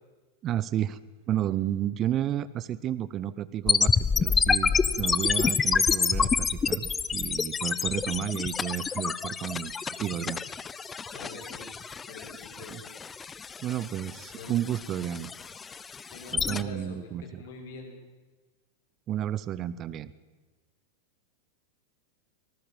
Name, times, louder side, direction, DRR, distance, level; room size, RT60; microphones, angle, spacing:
voice 1, 0.4-1.0 1.3-4.7 5.0-9.7 10.0-10.4 12.7-12.8 13.6-15.3 16.3-17.4 19.1-20.1, right 11 dB, 30° right, 17 dB, 0.8 m, -31 dB
sound 1, 3.7-16.6, left 5 dB, 20° left, 0.8 m, -28 dB
voice 2, 11.1-11.7 12.0-12.9 14.4-14.6 16.1-17.9, left 4 dB, 55° left, 2 dB, 6.0 m, -44 dB
25.0 x 19.5 x 7.4 m, 1.3 s
figure-of-eight pair, 90°, 0 cm